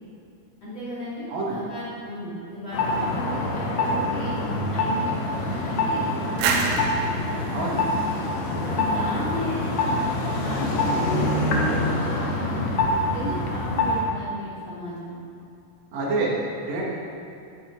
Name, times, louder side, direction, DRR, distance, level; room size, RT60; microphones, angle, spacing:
voice 1, 0.6-4.4 4.7-6.9 8.6-12.6 13.1-15.2, equal, 35° left, -10 dB, 2.8 m, -35 dB
sound 1, 2.7-14.1, left 2 dB, 75° left, 1.6 m, -25 dB
sound 2, 6.4-9.1, right 5 dB, 80° right, 2.9 m, -28 dB
voice 2, 7.5-7.9 15.9-16.4 16.6-16.8, right 3 dB, 50° right, -5 dB, 2.6 m, -27 dB
10.5 x 9.0 x 4.6 m, 2.7 s
omnidirectional pair, 4.9 m